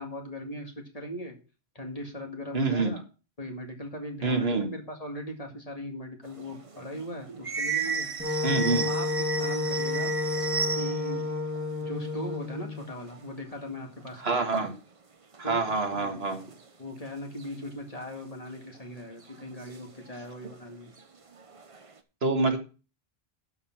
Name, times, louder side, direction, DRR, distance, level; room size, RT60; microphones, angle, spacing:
voice 1, 0.0-1.4 1.8-3.0 3.4-8.1 8.8-10.2 10.7-11.3 11.8-14.4 15.4-16.4 16.8-20.9, equal, 35° left, 2 dB, 2.1 m, -39 dB
voice 2, 2.5-2.9 4.2-4.7 8.4-8.9 14.2-14.7 15.4-16.4 22.2-22.6, right 3 dB, 75° right, 5 dB, 1.8 m, -26 dB
sound 1, 6.2-11.3 11.5-11.6 11.8-13.3 13.7-13.8 14.1-14.6 15.3-15.4 16.0-16.9 17.4-17.5 18.6-18.8 19.2-20.6 21.0-22.0, right 5 dB, 35° right, 0.9 m, -34 dB
Wind instrument woodwind instrument, 8.2-12.9, left 3 dB, 10° right, 2.1 m, -30 dB
12.0 x 5.1 x 5.9 m, 0.33 s
omnidirectional pair, 1.1 m